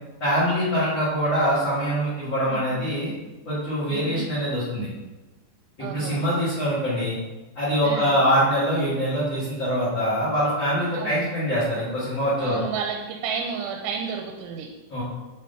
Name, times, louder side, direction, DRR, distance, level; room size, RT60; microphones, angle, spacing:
voice 1, 0.2-3.1 3.4-4.9 5.8-7.1 7.5-12.6 14.9-15.0, equal, 50° left, -11 dB, 1.4 m, -24 dB
voice 2, 2.4-2.8 3.9-4.3 5.8-6.2 7.8-8.2 10.9-11.2 12.4-14.7, right 6 dB, 90° right, 2 dB, 3.0 m, -32 dB
7.6 x 5.2 x 2.7 m, 1.2 s
omnidirectional pair, 5.3 m